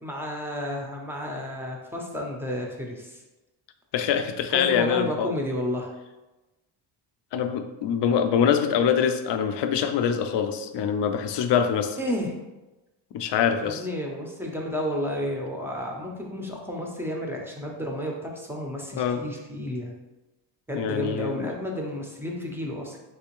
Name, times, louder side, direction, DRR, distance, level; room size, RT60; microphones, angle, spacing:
voice 1, 0.0-3.2 4.5-5.9 12.0-12.3 13.6-19.9 20.7-23.0, left 1 dB, 5° right, -1 dB, 0.5 m, -31 dB
voice 2, 3.9-5.3 7.3-12.0 13.1-13.8 19.0-19.2 20.7-21.5, left 7 dB, 60° left, 7 dB, 0.5 m, -24 dB
3.5 x 2.8 x 2.9 m, 1.1 s
cardioid pair, 95°, 48 cm